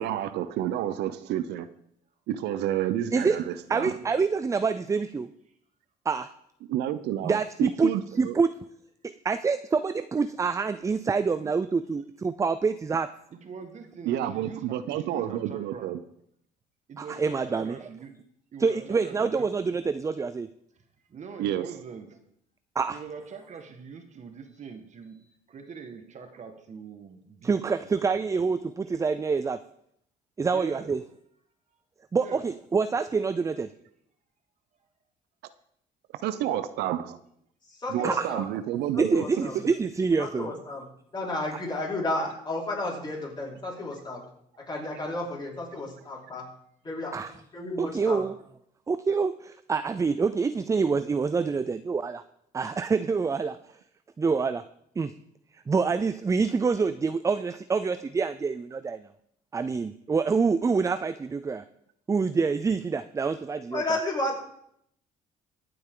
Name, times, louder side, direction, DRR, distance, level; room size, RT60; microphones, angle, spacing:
voice 1, 0.0-1.7 2.3-3.9 6.7-8.4 14.1-16.0 21.4-21.7 36.2-37.2 37.9-39.2, right 11 dB, 80° right, 12 dB, 0.7 m, -29 dB
voice 2, 3.7-5.3 6.1-6.3 7.2-7.9 8.2-8.5 9.0-13.1 17.0-17.8 18.6-20.5 22.8-23.0 27.4-29.6 30.4-31.0 32.1-33.7 38.0-38.3 39.0-40.5 47.1-47.3 47.8-48.4 48.9-52.2 52.5-53.6 54.2-54.7 55.0-55.1 55.7-59.1 59.5-61.6 62.1-63.8, right 5 dB, 20° right, 12 dB, 0.4 m, -26 dB
voice 3, 13.3-16.0 16.9-18.2 18.5-19.6 21.0-22.2 22.9-28.5 30.4-30.9 32.2-32.4 36.4-37.2, right 5 dB, 45° right, 6 dB, 1.7 m, -44 dB
voice 4, 37.6-38.4 38.9-39.6 40.2-40.8 41.1-44.3 44.6-46.5 46.8-48.2 63.7-64.4, left 2 dB, 25° left, -4 dB, 4.8 m, -32 dB
23.5 x 7.8 x 3.8 m, 0.72 s
cardioid pair, 110°, 17 cm